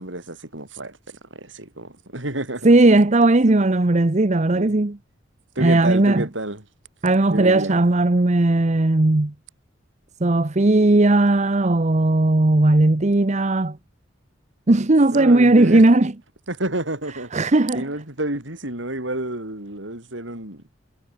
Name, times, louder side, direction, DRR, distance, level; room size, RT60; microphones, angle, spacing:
voice 1, 0.0-2.7 3.5-3.6 4.5-4.8 5.6-6.6 7.3-7.8 15.1-15.8 16.5-17.3 17.7-20.6, right 1 dB, 75° right, 6.8 m, -29 dB
voice 2, 2.6-5.0 5.6-6.3 7.0-9.3 10.2-13.8 14.7-16.1 17.3-17.8, right 2 dB, 40° right, 0.9 m, -17 dB
head